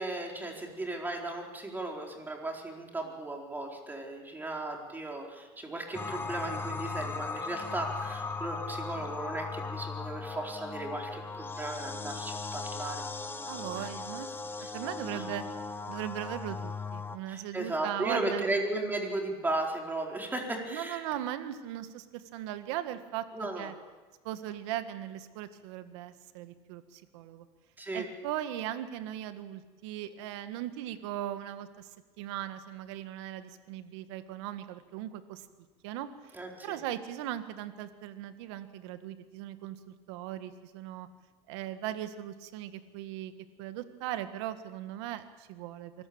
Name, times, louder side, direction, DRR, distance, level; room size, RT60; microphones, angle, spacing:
voice 1, 0.0-14.0 14.6-14.7 15.1-15.3 17.3-21.0 23.3-23.7 27.8-28.1 36.3-36.8, right 2 dB, 15° right, 1 dB, 4.4 m, -36 dB
sound 1, 5.9-17.2, left 4 dB, 15° left, 1.3 m, -38 dB
voice 2, 13.5-14.3 14.6-15.4 15.9-18.5 20.7-23.7 24.2-27.5 27.9-31.9 32.2-35.5 35.8-36.4 36.6-41.1 41.5-43.3 43.6-45.9, right 12 dB, 80° right, 10 dB, 1.7 m, -38 dB
24.5 x 14.5 x 8.8 m, 1.3 s
supercardioid pair, 115°, 14 cm